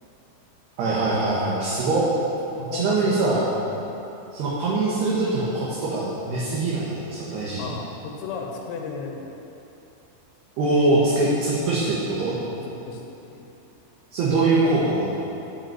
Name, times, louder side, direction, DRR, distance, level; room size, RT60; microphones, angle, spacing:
voice 1, 0.8-2.1 2.7-3.4 4.3-7.7 10.6-12.4 14.1-15.2, right 2 dB, 60° right, -6 dB, 3.5 m, -23 dB
voice 2, 2.6-3.9 7.6-9.3 12.5-13.0 13.3-13.4, left 4 dB, 90° left, 0 dB, 4.1 m, -35 dB
12.5 x 9.2 x 8.2 m, 3.0 s
omnidirectional pair, 5.8 m